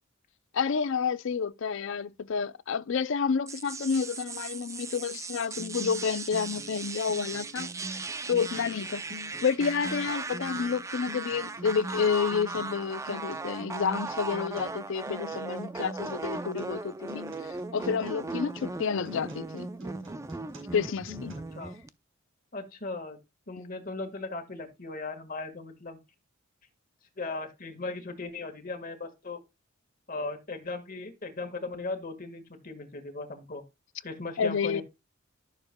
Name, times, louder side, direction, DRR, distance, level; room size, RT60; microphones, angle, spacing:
voice 1, 0.5-8.0 8.3-9.0 9.4-19.7 20.7-21.3 34.4-34.8, left 6 dB, 60° left, 0.4 m, -30 dB
sound 1, 3.5-21.9, right 3 dB, 15° right, 0.4 m, -38 dB
Acoustic guitar, 5.6-21.6, right 1 dB, 75° right, 5.0 m, -44 dB
voice 2, 22.5-23.2 23.5-26.0 27.2-29.4 30.1-33.6 34.0-34.8, left 3 dB, 40° left, 1.6 m, -37 dB
13.0 x 6.7 x 2.2 m
head